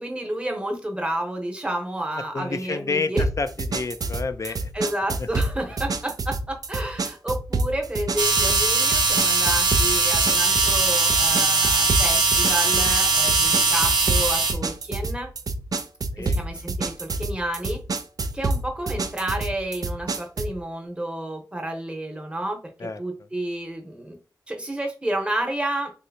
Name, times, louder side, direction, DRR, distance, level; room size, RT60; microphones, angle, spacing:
voice 1, 0.0-3.2 4.4-15.3 16.2-17.8 18.3-22.6 23.0-24.2 24.5-25.9, right 1 dB, 15° right, 3 dB, 0.9 m, -30 dB
voice 2, 2.3-4.7 5.2-5.3 16.2-16.4 22.8-23.0, left 4 dB, 45° left, 10 dB, 0.4 m, -29 dB
sound 1, 3.2-20.6, right 2 dB, 60° right, 0.3 m, -28 dB
sound 2, 8.2-14.5, right 3 dB, 85° right, 0.7 m, -20 dB
3.2 x 2.7 x 2.7 m, 0.36 s
wide cardioid pair, 65°, 7 cm